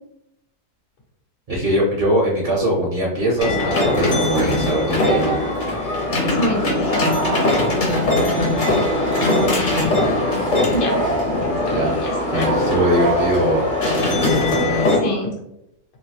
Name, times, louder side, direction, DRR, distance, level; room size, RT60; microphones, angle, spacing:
voice 1, 1.5-5.4 11.7-11.9 12.3-13.7 14.6-14.9, equal, 50° right, -3 dB, 0.7 m, -21 dB
sound 1, 3.4-15.0, left 1 dB, 50° left, 0.6 m, -20 dB
voice 2, 6.2-7.2 10.7-11.0 11.4-12.5 15.0-15.3, left 1 dB, 85° left, 0 dB, 1.4 m, -26 dB
3.1 x 2.6 x 2.8 m, 0.82 s
omnidirectional pair, 1.7 m